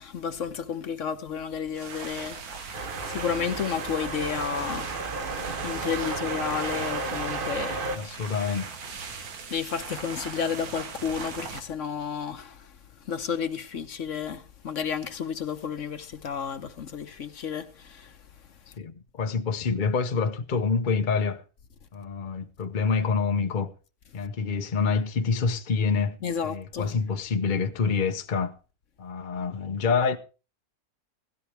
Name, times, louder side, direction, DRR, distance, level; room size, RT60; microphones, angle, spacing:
voice 1, 0.0-5.0 5.6-7.9 9.1-9.2 9.5-12.8 13.0-18.2 26.2-26.9, left 7 dB, 60° left, 1.2 m, -32 dB
sound 1, 1.7-11.6, right 5 dB, 80° right, 1.8 m, -40 dB
sound 2, 2.7-8.0, right 3 dB, 40° right, 1.1 m, -33 dB
voice 2, 7.9-8.7 18.8-21.4 21.9-23.7 24.1-26.2 26.4-28.5 29.0-30.2, left 5 dB, 40° left, 0.8 m, -27 dB
17.0 x 13.0 x 3.4 m
omnidirectional pair, 1.6 m